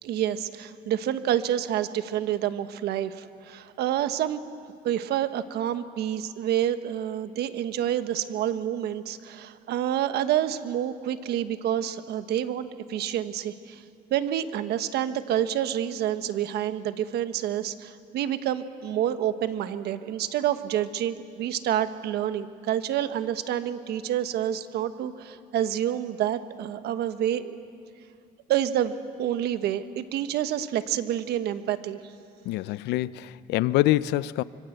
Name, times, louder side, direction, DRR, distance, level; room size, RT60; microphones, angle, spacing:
voice 1, 0.0-4.4 4.8-13.8 14.1-27.6 28.5-32.0, right 11 dB, 75° right, 11 dB, 1.3 m, -28 dB
voice 2, 32.4-34.4, left 16 dB, 85° left, 18 dB, 0.6 m, -25 dB
25.5 x 25.0 x 8.0 m, 2.4 s
cardioid pair, 110°, 17 cm